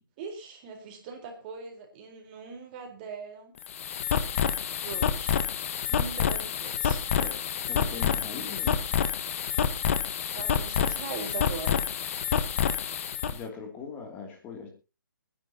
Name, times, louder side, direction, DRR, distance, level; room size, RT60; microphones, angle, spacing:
voice 1, 0.2-3.5 4.8-5.4 5.9-7.0 10.4-11.8, right 5 dB, 30° right, 4.2 m, -40 dB
sound 1, 3.6-13.4, left 8 dB, 40° left, 1.2 m, -28 dB
voice 2, 7.2-8.9 13.3-14.7, left 5 dB, 15° left, 2.7 m, -41 dB
27.5 x 10.5 x 2.9 m
hypercardioid pair, 150°, 11 cm